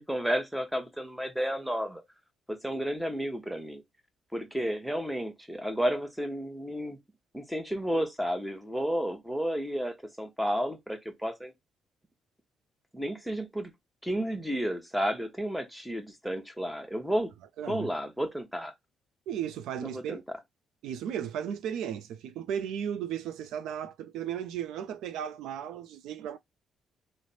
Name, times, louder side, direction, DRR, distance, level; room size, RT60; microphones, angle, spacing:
voice 1, 0.0-2.0 2.5-3.8 4.3-7.0 7.3-11.5 12.9-13.7 14.0-17.3 17.7-18.7 19.8-20.2, equal, 5° right, 0.8 m, -32 dB
voice 2, 17.6-17.9 19.3-20.2 20.8-26.4, right 9 dB, 85° right, 0.4 m, -35 dB
3.2 x 2.0 x 3.9 m
cardioid pair, 90°, 0 cm